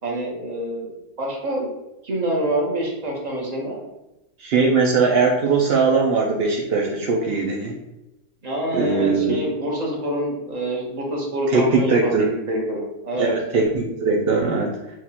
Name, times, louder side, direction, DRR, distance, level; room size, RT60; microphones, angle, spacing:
voice 1, 0.0-1.7 2.0-3.8 8.4-13.3, right 1 dB, 30° right, -2 dB, 1.0 m, -26 dB
voice 2, 4.4-7.8 8.7-9.4 11.5-12.3 13.2-14.7, right 4 dB, 70° right, -2 dB, 0.5 m, -20 dB
6.2 x 2.4 x 2.9 m, 0.94 s
omnidirectional pair, 1.7 m